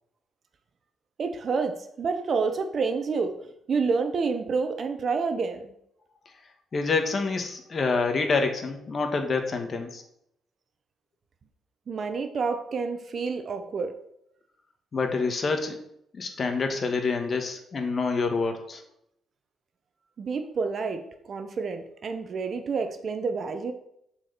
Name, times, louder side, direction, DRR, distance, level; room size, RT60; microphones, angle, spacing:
voice 1, 1.2-3.4 3.7-5.7 11.9-14.0 20.2-23.7, right 4 dB, 50° right, 8 dB, 1.0 m, -28 dB
voice 2, 6.7-10.0 14.9-15.8 16.1-18.8, left 4 dB, 40° left, 5 dB, 1.6 m, -27 dB
7.5 x 4.9 x 6.7 m, 0.74 s
cardioid pair, 90°, 0 cm